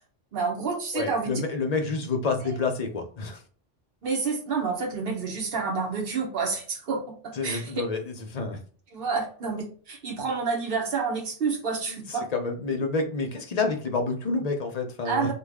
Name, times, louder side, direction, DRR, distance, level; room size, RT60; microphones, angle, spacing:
voice 1, 0.3-1.4 2.4-2.6 4.0-7.7 8.9-12.3 15.0-15.3, right 5 dB, 55° right, 0 dB, 1.1 m, -29 dB
voice 2, 0.9-3.4 7.3-8.6 11.8-15.3, left 3 dB, 45° left, 3 dB, 0.6 m, -29 dB
3.2 x 2.2 x 3.5 m, 0.42 s
omnidirectional pair, 1.2 m